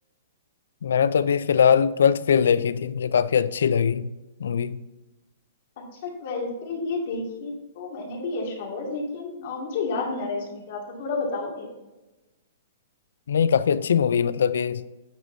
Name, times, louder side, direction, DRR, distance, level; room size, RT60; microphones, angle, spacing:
voice 1, 0.8-4.1 4.4-4.8 13.3-14.8, left 7 dB, 90° left, 0.4 m, -21 dB
voice 2, 6.0-11.7, left 3 dB, 45° left, 2.2 m, -31 dB
9.3 x 8.3 x 2.7 m
hypercardioid pair, 170°, 0 cm